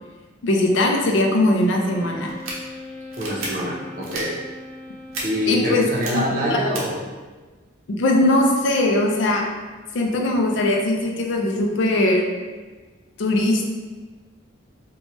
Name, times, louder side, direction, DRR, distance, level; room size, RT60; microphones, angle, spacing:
voice 1, 0.4-2.3 5.5-6.7 7.9-9.5 9.9-12.3 13.2-13.7, left 1 dB, 65° left, 1 dB, 0.4 m, -20 dB
Wind instrument woodwind instrument, 1.7-6.4, left 2 dB, 40° left, 0.7 m, -40 dB
sound 1, 2.3-2.5 3.1-3.5 4.0-4.2 5.1-5.2 5.9-6.1 6.7-6.8, right 3 dB, 90° right, 0.6 m, -31 dB
voice 2, 3.2-4.3 5.2-7.0, equal, 40° right, -5 dB, 0.6 m, -25 dB
2.7 x 2.2 x 2.9 m, 1.3 s
head